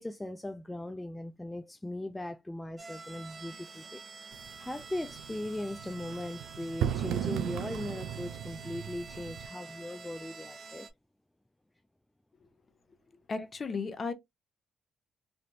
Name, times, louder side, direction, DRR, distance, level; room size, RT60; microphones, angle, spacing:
voice 1, 0.0-4.0 4.6-10.9 13.4-13.8, left 1 dB, 10° left, 0.3 m, -39 dB
sound 1, 2.8-10.9, right 4 dB, 40° right, 0.8 m, -48 dB
sound 2, 4.3-9.5, right 10 dB, 90° right, 0.4 m, -36 dB
voice 2, 13.3-14.1, left 4 dB, 40° left, 0.8 m, -34 dB
3.3 x 2.4 x 2.7 m
cardioid pair, 90°, 0 cm